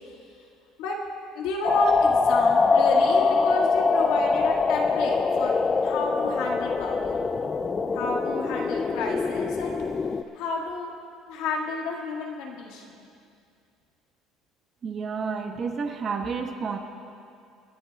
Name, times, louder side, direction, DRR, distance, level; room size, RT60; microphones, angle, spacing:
voice 1, 1.3-5.5 5.8-7.1 7.9-9.8 10.3-10.9 11.3-13.1, left 3 dB, 80° left, -1 dB, 1.9 m, -31 dB
sound 1, 1.6-10.2, left 4 dB, 20° left, 0.3 m, -23 dB
voice 2, 14.8-16.8, right 5 dB, 30° right, 3 dB, 1.1 m, -30 dB
28.5 x 11.0 x 2.3 m, 2.4 s
cardioid pair, 165°, 0 cm